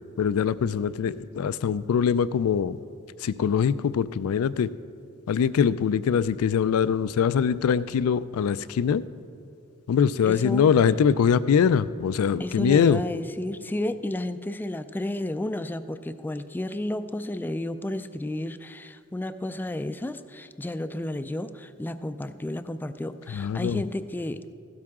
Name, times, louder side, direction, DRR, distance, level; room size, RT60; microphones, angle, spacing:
voice 1, 0.2-2.8 3.2-4.7 5.3-9.0 9.9-13.0 23.3-23.8, left 7 dB, 90° left, 16 dB, 0.4 m, -23 dB
voice 2, 10.3-10.7 12.4-24.4, left 1 dB, 10° left, 12 dB, 0.3 m, -32 dB
15.5 x 12.0 x 3.7 m, 2.5 s
head